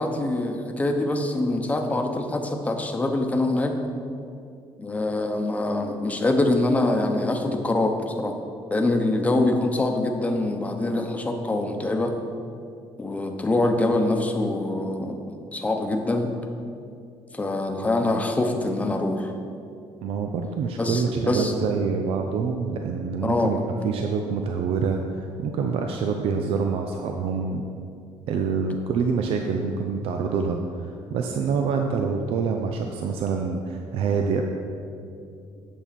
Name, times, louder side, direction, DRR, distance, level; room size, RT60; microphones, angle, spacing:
voice 1, 0.0-3.8 4.8-8.4 8.7-12.1 13.0-16.3 17.3-19.3 20.8-21.5 23.2-23.6, left 2 dB, 15° left, 4 dB, 0.9 m, -24 dB
voice 2, 20.0-27.6 28.3-34.4, right 5 dB, 70° right, 4 dB, 0.6 m, -26 dB
8.7 x 7.2 x 4.2 m, 2.5 s
cardioid pair, 110°, 10 cm